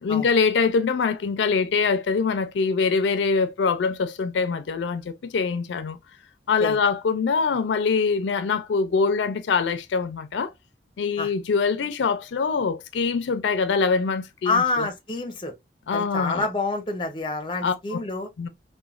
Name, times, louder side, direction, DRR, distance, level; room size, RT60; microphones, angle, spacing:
voice 1, 0.0-6.0 6.5-10.5 11.0-14.9 15.9-16.5 17.6-18.0 18.4-18.5, left 5 dB, 85° left, 0.4 m, -24 dB
voice 2, 14.5-15.5 15.9-18.3, left 3 dB, 25° left, 0.5 m, -27 dB
3.0 x 2.1 x 2.3 m
head